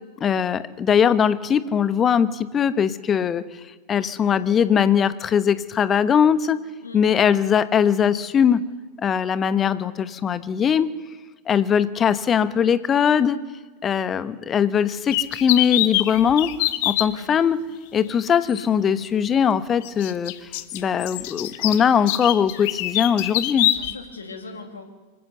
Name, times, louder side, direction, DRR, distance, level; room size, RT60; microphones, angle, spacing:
voice 1, 0.2-3.4 3.9-6.6 6.9-8.6 9.0-10.9 11.5-13.4 13.8-16.5 16.8-17.6 17.9-20.3 20.7-23.7, left 8 dB, 25° left, 14 dB, 1.0 m, -20 dB
sound 1, 15.1-17.1 18.5-18.6 19.8-23.9, left 16 dB, 50° left, 1.0 m, -24 dB
voice 2, 23.7-24.8, left 3 dB, 75° left, 5 dB, 2.7 m, -39 dB
25.0 x 15.0 x 7.0 m, 1.3 s
figure-of-eight pair, 90°, 0 cm